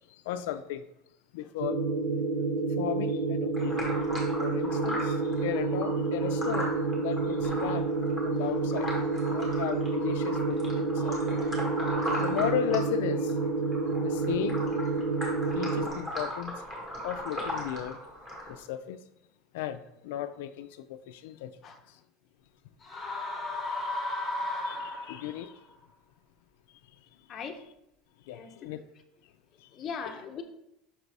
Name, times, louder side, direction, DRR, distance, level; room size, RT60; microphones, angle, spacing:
voice 1, 0.1-0.8 1.3-1.8 2.8-3.9 4.4-7.9 8.2-8.9 9.3-11.4 12.1-13.4 14.0-14.6 15.5-16.6 17.0-18.0 18.5-19.0 19.5-21.6 21.9-22.0 24.6-25.6 28.2-28.8 29.6-30.1, left 11 dB, 80° left, 0.3 m, -35 dB
sound 1, 1.6-15.9, right 3 dB, 85° right, 0.7 m, -29 dB
sound 2, 3.5-18.6, equal, 15° right, 1.7 m, -38 dB
sound 3, 22.8-25.4, left 2 dB, 10° left, 1.8 m, -34 dB
voice 2, 29.7-30.4, left 6 dB, 25° left, 0.6 m, -39 dB
5.9 x 4.0 x 4.7 m
cardioid pair, 180°, 0 cm